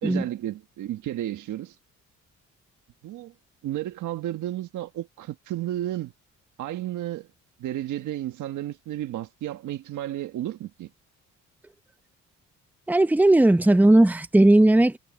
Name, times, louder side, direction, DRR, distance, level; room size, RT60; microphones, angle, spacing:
voice 1, 0.0-1.7 3.0-3.3 3.6-6.1 6.6-7.3 7.6-10.9, right 13 dB, 80° right, 1.5 m, -32 dB
voice 2, 12.9-15.0, right 1 dB, 5° right, 0.8 m, -17 dB
cardioid pair, 90°, 30 cm